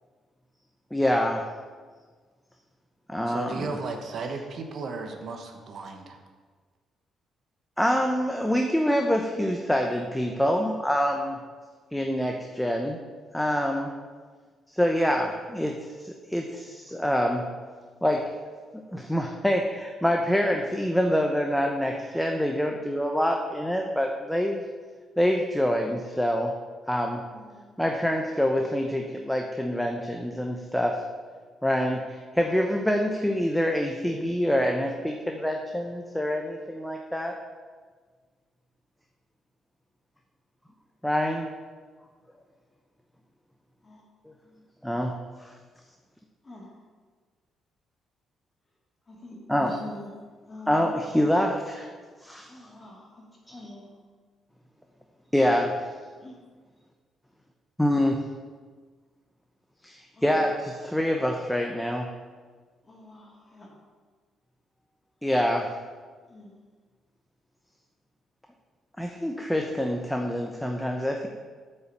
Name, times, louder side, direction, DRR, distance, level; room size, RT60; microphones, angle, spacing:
voice 1, 0.9-1.4 3.1-3.7 7.8-11.4 11.9-13.0 13.3-13.9 14.7-15.7 16.1-17.4 18.0-18.2 18.9-24.6 25.2-26.5 26.9-27.2 27.8-31.0 31.6-37.3 41.0-41.5 44.8-45.1 49.5-49.7 50.7-51.9 52.2-52.5 55.3-55.8 57.8-58.2 59.8-62.1 65.2-65.7 69.0-71.3, equal, 5° left, 2 dB, 0.8 m, -26 dB
voice 2, 3.3-6.2, right 4 dB, 60° right, 4 dB, 1.1 m, -35 dB
voice 3, 27.3-27.7 43.8-44.0 46.4-46.8 49.1-50.2 50.5-51.0 52.5-54.0 56.2-56.4 60.1-60.6 62.8-63.7 66.3-66.6, left 2 dB, 25° left, -3 dB, 2.8 m, -45 dB
8.2 x 5.8 x 6.7 m, 1.5 s
cardioid pair, 90°, 0 cm